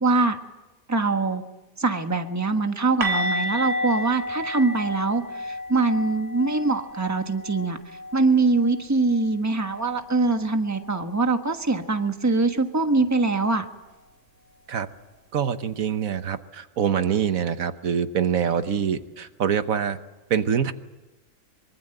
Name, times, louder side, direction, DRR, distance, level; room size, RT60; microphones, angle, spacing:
voice 1, 0.0-0.4 0.9-1.4 1.8-7.8 8.1-13.6, right 3 dB, 15° right, 6 dB, 1.3 m, -23 dB
sound 1, 3.0-8.8 9.0-9.3 9.6-9.8 13.0-13.1, equal, 60° right, 3.4 m, -31 dB
voice 2, 15.3-20.0 20.3-20.7, right 8 dB, 75° right, 10 dB, 1.5 m, -25 dB
24.5 x 24.0 x 7.9 m, 1.1 s
omnidirectional pair, 1.4 m